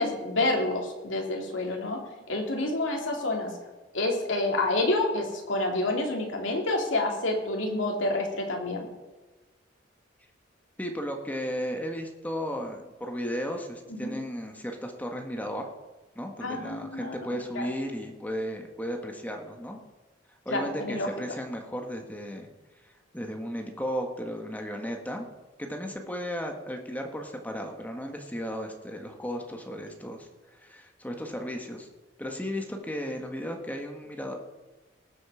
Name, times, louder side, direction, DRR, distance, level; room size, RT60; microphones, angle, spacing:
voice 1, 0.0-2.0 2.3-3.5 3.9-8.9 13.9-14.2 16.4-17.1 17.5-17.7 20.5-21.1, left 2 dB, 80° left, 0 dB, 3.2 m, -28 dB
voice 2, 10.8-15.7 16.1-19.8 20.4-22.5 22.8-25.3 25.6-31.9 32.2-34.4, equal, 10° left, 3 dB, 1.5 m, -35 dB
19.0 x 7.7 x 5.0 m, 1.2 s
head